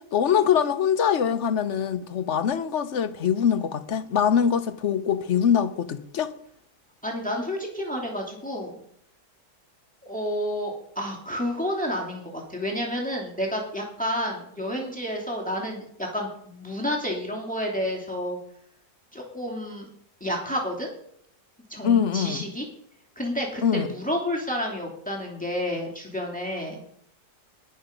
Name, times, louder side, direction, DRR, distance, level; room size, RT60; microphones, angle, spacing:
voice 1, 0.0-6.3 21.8-22.4 23.6-23.9, left 8 dB, 55° left, 1.1 m, -23 dB
voice 2, 7.0-8.8 10.0-18.4 19.1-19.9 20.2-20.9 21.7-22.6 23.2-26.8, equal, 5° left, 2.8 m, -30 dB
20.5 x 6.9 x 5.3 m
omnidirectional pair, 1.7 m